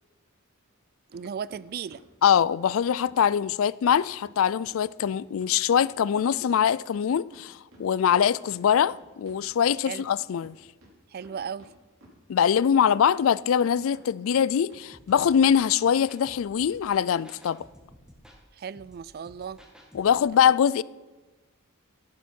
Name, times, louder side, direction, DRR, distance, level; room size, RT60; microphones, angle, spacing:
voice 1, 1.1-2.0 9.8-10.0 11.1-11.7 18.5-19.6, right 7 dB, 45° right, 0.3 m, -36 dB
sound 1, 1.1-1.2 1.5-3.2 3.5-3.6 3.9-4.0 4.2-4.3 4.6-7.1 7.3-10.1 10.4-10.5 10.8-11.7 12.0-12.9 13.2-14.8 15.1-15.6 15.8-15.9 16.2-16.3 16.7-16.8 17.1-17.3, right 1 dB, 70° right, 4.1 m, -53 dB
voice 2, 2.2-10.6 12.3-17.6 19.9-20.8, left 8 dB, 70° left, 0.3 m, -23 dB
sound 2, 14.9-20.2, equal, 5° right, 1.7 m, -54 dB
14.0 x 10.5 x 4.4 m
head